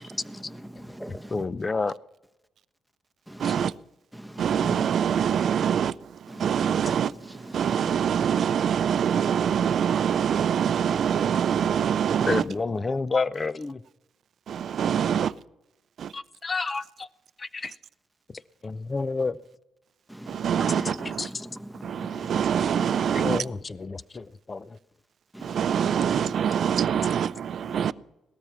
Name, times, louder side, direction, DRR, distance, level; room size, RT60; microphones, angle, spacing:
voice 1, 0.2-1.4 3.3-3.5 4.1-4.9 6.3-6.8 7.4-7.9 20.1-23.4 25.3-26.5 27.6-27.9, right 1 dB, ahead, 1.0 m, -41 dB
voice 2, 1.1-1.9 12.3-13.8 16.5-17.1 17.4-17.7 18.6-19.4 21.2-21.3 23.1-24.8, left 4 dB, 30° left, 0.6 m, -29 dB
voice 3, 3.4-3.7 4.4-12.4 14.5-15.3 20.3-21.3 21.8-23.4 25.4-27.9, right 8 dB, 60° right, 0.5 m, -25 dB
18.5 x 13.5 x 5.8 m
cardioid pair, 90°, 0 cm